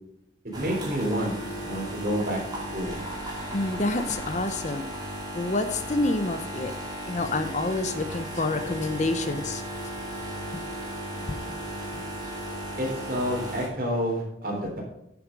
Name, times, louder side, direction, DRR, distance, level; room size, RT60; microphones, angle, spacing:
voice 1, 0.4-1.3 1.6-2.4 2.7-2.9 12.8-14.8, equal, 50° right, -1 dB, 3.5 m, -29 dB
sound 1, 0.5-13.7, right 1 dB, 20° right, 2.5 m, -35 dB
sound 2, 2.7-7.4 7.7-9.3, left 1 dB, 60° left, 2.8 m, -48 dB
voice 2, 3.5-4.9 5.3-6.7 7.1-9.6 10.5-10.6 11.3-11.4 12.0-12.1, left 2 dB, 40° left, 9 dB, 0.7 m, -28 dB
9.6 x 7.1 x 5.2 m, 0.84 s
head